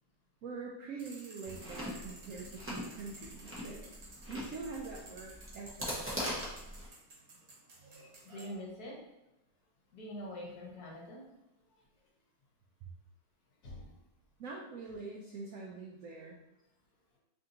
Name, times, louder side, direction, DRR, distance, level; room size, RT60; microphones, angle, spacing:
voice 1, 0.4-3.9 4.3-6.0 14.4-16.4, right 4 dB, 80° right, -2 dB, 0.7 m, -44 dB
sound 1, 1.0-8.5, right 2 dB, 60° right, 1.4 m, -54 dB
Chewing mastication, 1.4-6.9, equal, 20° right, 0.3 m, -42 dB
voice 2, 8.2-8.9 9.9-11.2 11.7-11.8 13.6-14.0, left 1 dB, 60° left, -3 dB, 1.4 m, -44 dB
3.4 x 2.7 x 3.8 m, 0.95 s
omnidirectional pair, 2.0 m